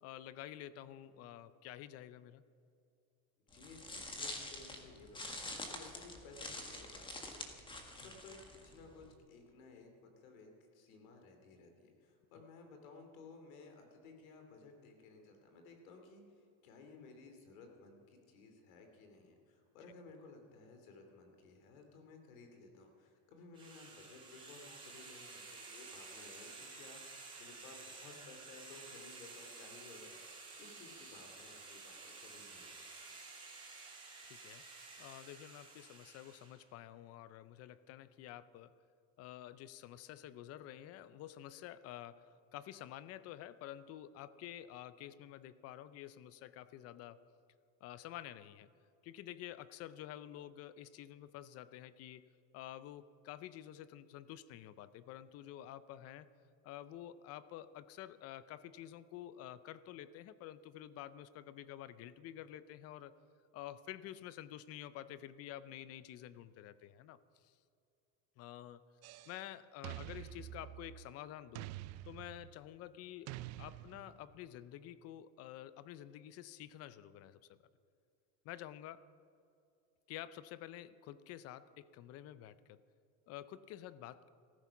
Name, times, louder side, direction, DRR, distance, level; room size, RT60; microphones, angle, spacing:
voice 1, 0.0-2.4 8.0-8.1 34.2-34.7 35.0-38.8 39.2-47.2 47.8-48.7 49.0-56.3 56.6-63.1 63.5-67.5 68.4-68.8 69.3-71.7 72.0-77.6 78.4-79.1 80.1-82.8 83.3-84.3, left 12 dB, 40° left, 16 dB, 0.6 m, -50 dB
voice 2, 3.5-7.4 7.7-32.9, left 3 dB, 80° left, 4 dB, 3.1 m, -57 dB
sound 1, 3.5-9.1, left 2 dB, 10° left, 1.6 m, -46 dB
sound 2, 23.5-36.6, right 4 dB, 10° right, 3.7 m, -52 dB
sound 3, 69.0-69.4 69.8-71.1 71.5-72.6 73.3-74.3, right 15 dB, 40° right, 0.5 m, -47 dB
15.0 x 14.0 x 6.0 m, 2.5 s
supercardioid pair, 140°, 40 cm